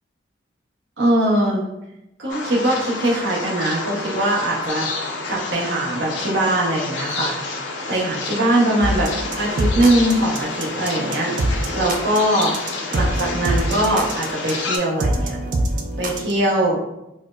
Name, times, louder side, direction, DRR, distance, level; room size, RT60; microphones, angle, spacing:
voice 1, 1.0-1.7 2.2-4.9 5.3-7.4 7.9-11.3 11.7-12.6 12.9-15.4 16.0-16.8, right 1 dB, 70° right, -3 dB, 0.8 m, -21 dB
sound 1, 2.3-14.8, left 3 dB, 80° left, 0.5 m, -29 dB
sound 2, 8.8-16.3, right 1 dB, 45° right, 0.4 m, -24 dB
4.1 x 2.0 x 2.4 m, 0.90 s
head